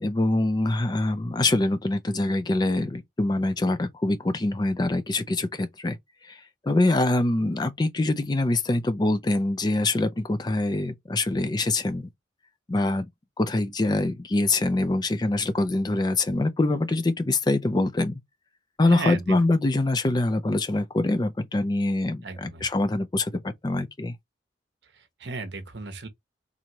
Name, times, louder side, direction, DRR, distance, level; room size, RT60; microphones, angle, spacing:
voice 1, 0.0-6.0 6.6-12.1 12.7-13.1 13.4-18.1 18.8-24.1, left 2 dB, 20° left, 0.4 m, -24 dB
voice 2, 18.8-19.4 22.2-22.6 24.9-26.1, right 3 dB, 65° right, 1.0 m, -35 dB
4.4 x 2.7 x 2.9 m
head